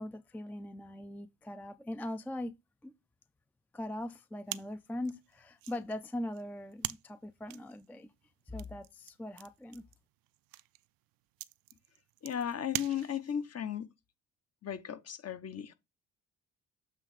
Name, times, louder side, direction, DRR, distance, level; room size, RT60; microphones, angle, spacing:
voice 1, 0.0-2.5 2.8-2.9 3.7-8.1 8.5-9.8, left 1 dB, 5° left, 0.5 m, -41 dB
sound 1, 4.5-13.5, right 16 dB, 55° right, 0.5 m, -45 dB
voice 2, 12.2-13.9 14.6-15.7, left 9 dB, 35° left, 0.9 m, -36 dB
7.6 x 3.1 x 4.9 m
hypercardioid pair, 50°, 43 cm